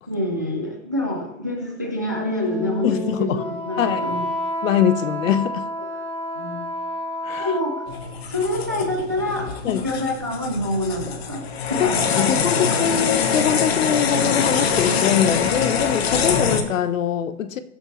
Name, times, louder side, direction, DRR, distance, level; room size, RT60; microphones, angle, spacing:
voice 1, 0.1-4.2 6.3-6.6 7.4-7.8 8.3-12.7, left 1 dB, 15° right, 0.3 m, -27 dB
Wind instrument woodwind instrument, 2.0-8.2, left 1 dB, 15° left, 1.7 m, -30 dB
voice 2, 2.8-3.4 3.8-4.0 4.6-5.7 7.2-7.5 9.6-9.9 11.8-17.6, left 9 dB, 75° left, 1.0 m, -23 dB
sound 1, 7.9-16.6, left 6 dB, 50° left, 1.3 m, -23 dB
20.5 x 7.6 x 3.1 m
supercardioid pair, 180°, 39 cm